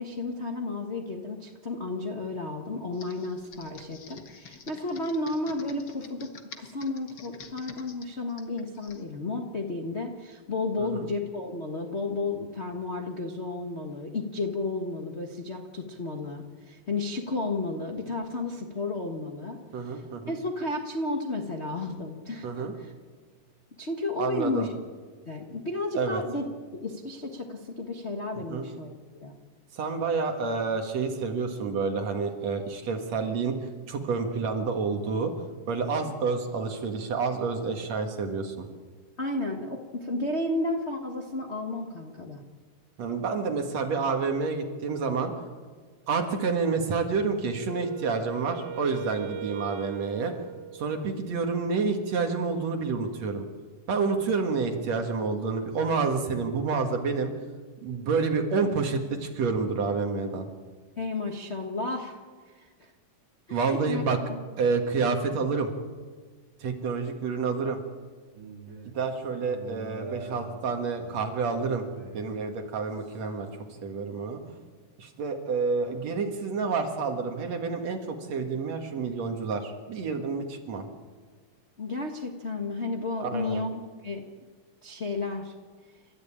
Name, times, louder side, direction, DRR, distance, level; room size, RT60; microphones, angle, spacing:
voice 1, 0.0-19.6 19.8-22.9 23.8-24.7 25.3-26.5 26.7-29.3 39.2-42.4 61.0-62.2 62.5-62.9 63.5-64.4 81.8-84.2 84.8-85.5, left 2 dB, 75° left, 1 dB, 0.6 m, -33 dB
Computer keyboard, 2.9-9.0, left 6 dB, 55° left, 1.2 m, -48 dB
voice 2, 10.8-11.1 19.7-20.3 22.4-22.7 24.2-24.7 25.9-26.2 28.5-28.6 29.7-33.6 33.9-35.3 35.7-38.7 43.0-45.3 46.1-50.3 50.7-53.5 53.9-57.3 57.8-60.5 63.5-64.2 64.6-65.7 66.6-67.8 68.9-71.9 72.1-73.5 73.8-74.6 75.0-80.9 83.2-83.6, right 4 dB, 55° right, 4 dB, 2.8 m, -29 dB
Wind instrument woodwind instrument, 47.5-51.4, right 9 dB, 75° right, 1.9 m, -40 dB
sound 1, 68.3-73.3, right 4 dB, 40° right, 1.9 m, -45 dB
30.0 x 13.5 x 8.8 m, 1.5 s
omnidirectional pair, 4.0 m